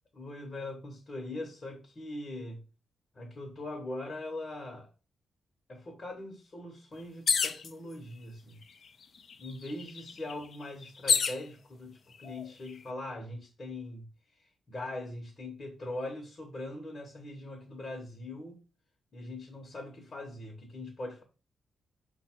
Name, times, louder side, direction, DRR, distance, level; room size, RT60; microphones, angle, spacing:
voice 1, 0.2-2.6 3.1-4.9 5.7-8.6 9.4-14.1 14.4-18.6 19.1-21.2, left 2 dB, 35° left, 0.9 m, -41 dB
sound 1, 7.3-7.7 8.6-8.7 9.0-11.4 12.2-12.7, left 6 dB, 50° left, 0.4 m, -29 dB
5.1 x 2.3 x 4.3 m
wide cardioid pair, 145°, 0 cm